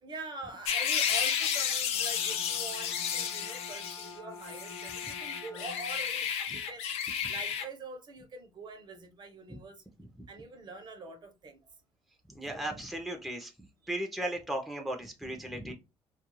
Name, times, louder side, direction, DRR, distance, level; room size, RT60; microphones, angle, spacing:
voice 1, 0.0-6.8 7.3-9.8 10.3-11.6 12.5-12.7, right 3 dB, 45° right, 0.7 m, -45 dB
sound 1, 0.7-4.1 4.4-7.7, left 8 dB, 85° left, 0.4 m, -32 dB
Bowed string instrument, 1.8-6.1, left 4 dB, 40° left, 1.0 m, -48 dB
voice 2, 12.3-13.5 13.9-15.7, right 1 dB, ahead, 0.6 m, -36 dB
2.3 x 2.3 x 3.0 m
cardioid pair, 90°, 10 cm